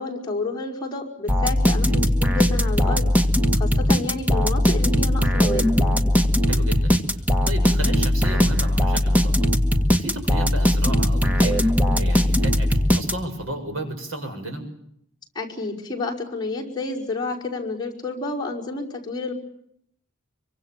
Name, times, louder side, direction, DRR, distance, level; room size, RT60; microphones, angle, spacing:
voice 1, 0.0-3.1 3.5-5.7 15.4-19.3, left 3 dB, 20° left, -2 dB, 5.3 m, -30 dB
sound 1, 1.3-13.5, left 1 dB, 10° right, 1.8 m, -20 dB
voice 2, 6.5-7.0 7.4-9.4 10.0-14.7, right 1 dB, 75° right, 5 dB, 7.0 m, -33 dB
25.5 x 24.5 x 7.6 m, 0.70 s
head